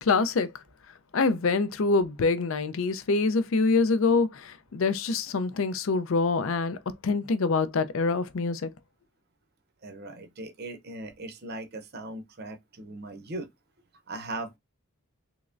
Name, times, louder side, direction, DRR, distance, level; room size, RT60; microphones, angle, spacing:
voice 1, 0.0-0.5 1.1-6.8 7.0-8.7, left 4 dB, 65° left, 0.5 m, -25 dB
voice 2, 9.8-13.5 14.1-14.6, right 2 dB, 45° right, 0.6 m, -39 dB
3.5 x 3.1 x 2.5 m
head